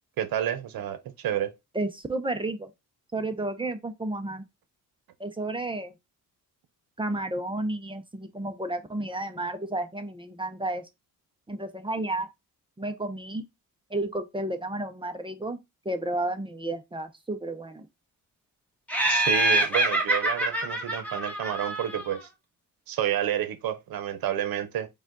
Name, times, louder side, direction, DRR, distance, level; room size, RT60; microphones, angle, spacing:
voice 1, 0.2-1.5 19.1-22.3 22.9-24.9, right 10 dB, 75° right, 0.9 m, -29 dB
voice 2, 1.7-2.7 3.1-4.4 5.2-5.9 7.0-10.8 11.5-12.3 12.8-13.4 13.9-15.6 15.8-17.9, right 2 dB, 15° right, 0.7 m, -32 dB
Laughter, 18.9-22.2, right 1 dB, 5° left, 1.3 m, -26 dB
4.9 x 2.4 x 3.8 m
cardioid pair, 105°, 35 cm